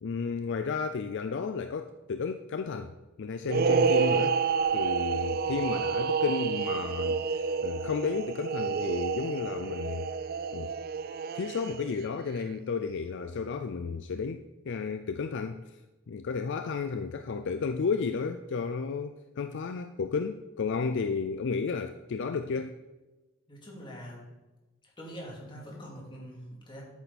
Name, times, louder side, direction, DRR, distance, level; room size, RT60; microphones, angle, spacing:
voice 1, 0.0-2.9 3.2-4.4 4.7-10.1 10.5-10.7 11.3-15.6 16.1-22.8, left 5 dB, 55° left, 9 dB, 0.4 m, -32 dB
sound 1, 3.5-12.0, right 5 dB, 45° right, 0.4 m, -29 dB
voice 2, 23.5-24.3 25.0-26.8, equal, 25° left, -3 dB, 2.6 m, -44 dB
10.0 x 8.9 x 4.1 m, 1.1 s
head